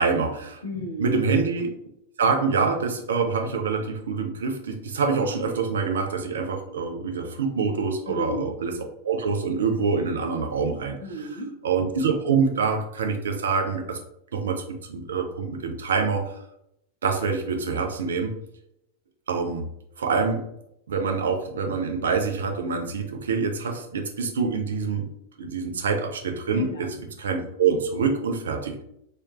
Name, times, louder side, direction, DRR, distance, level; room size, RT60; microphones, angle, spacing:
voice 1, 0.0-0.6 1.0-1.7 2.2-8.7 9.0-11.0 11.6-14.0 14.3-14.6 14.9-16.3 17.0-18.4 19.3-19.7 20.0-20.5 20.9-25.1 25.4-26.9 27.2-28.8, right 5 dB, 65° right, 4 dB, 0.5 m, -25 dB
voice 2, 0.6-1.2 8.1-8.5 11.0-11.5 26.5-27.0, equal, 80° left, -4 dB, 1.1 m, -34 dB
3.1 x 2.9 x 2.4 m, 0.77 s
figure-of-eight pair, 90°, 0 cm